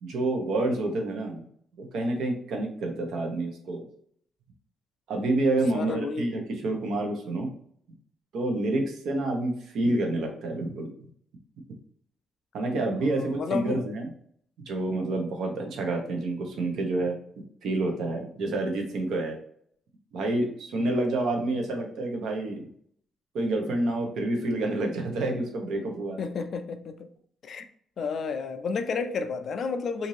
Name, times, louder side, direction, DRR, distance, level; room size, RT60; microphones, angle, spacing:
voice 1, 0.0-1.4 1.8-3.8 5.1-7.5 8.3-10.9 12.5-14.1 14.7-17.2 17.6-19.4 20.1-22.6 23.3-26.2, right 2 dB, 75° right, 0.8 m, -28 dB
voice 2, 5.7-6.3 13.0-13.8 26.2-27.1 27.4-27.7 28.0-30.1, left 5 dB, 55° left, 0.4 m, -31 dB
2.7 x 2.6 x 3.1 m
cardioid pair, 120°, 0 cm